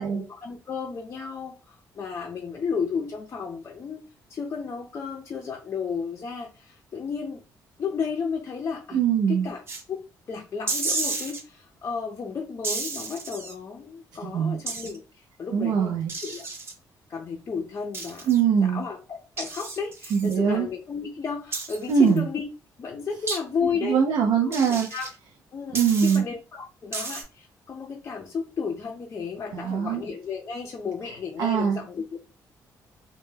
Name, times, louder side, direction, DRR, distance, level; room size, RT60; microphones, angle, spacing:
voice 1, 0.0-4.0 4.3-7.4 7.8-9.0 9.3-9.6 9.9-10.0 10.3-16.0 16.2-16.5 17.1-18.3 18.6-22.4 22.8-24.0 24.5-25.1 25.5-32.2, left 5 dB, 40° left, 1 dB, 0.4 m, -33 dB
voice 2, 8.9-9.5 14.2-14.6 15.5-16.1 18.3-18.8 20.1-20.7 21.9-22.3 23.8-24.9 25.7-26.2 29.5-30.0 31.4-31.8, right 7 dB, 75° right, 2 dB, 0.4 m, -22 dB
sound 1, 9.7-9.8 10.7-11.4 12.6-13.5 14.7-15.0 16.1-16.7 17.9-18.4 19.4-20.3 21.5-22.2 23.3-23.4 24.5-25.1 25.7-26.2 26.9-27.2, right 3 dB, 35° right, 0.7 m, -32 dB
2.1 x 2.0 x 3.1 m, 0.33 s
cardioid pair, 100°, 7 cm